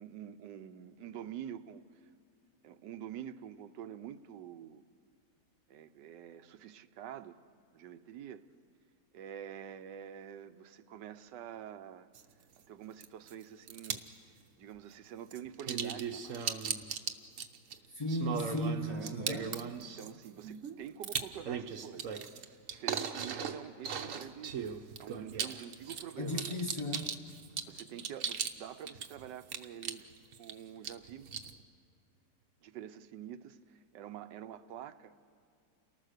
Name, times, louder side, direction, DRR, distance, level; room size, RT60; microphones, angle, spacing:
voice 1, 0.0-1.8 2.6-4.8 5.7-7.3 7.7-8.4 9.1-12.1 12.7-14.0 14.6-16.4 19.8-22.2 22.5-24.7 25.0-26.6 27.7-30.0 30.4-31.3 32.6-35.1, right 10 dB, 85° right, 11 dB, 1.4 m, -47 dB
sound 1, 12.1-12.2 13.0-13.3 13.7-14.1 15.3-28.6 28.9-30.5 30.8-31.5, right 7 dB, 55° right, 1.1 m, -38 dB
voice 2, 17.9-19.6 26.2-27.1, equal, 20° left, 2 dB, 1.2 m, -35 dB
29.0 x 19.0 x 6.6 m, 2.2 s
omnidirectional pair, 1.8 m